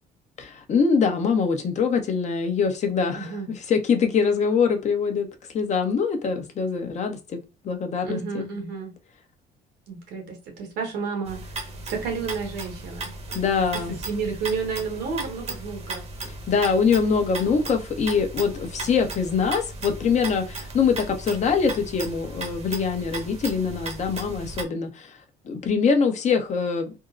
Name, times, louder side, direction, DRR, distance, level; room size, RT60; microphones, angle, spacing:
voice 1, 0.4-5.3 5.5-7.4 7.6-8.6 13.3-14.0 16.2-25.2 25.5-26.9, left 5 dB, 45° left, 0.8 m, -24 dB
voice 2, 3.1-3.5 8.0-8.9 9.9-11.5 11.9-13.1 13.7-13.8 14.1-16.0, right 5 dB, 85° right, 1.4 m, -31 dB
sound 1, 11.3-24.6, right 2 dB, 40° right, 0.9 m, -36 dB
3.5 x 2.0 x 2.4 m
cardioid pair, 110°, 17 cm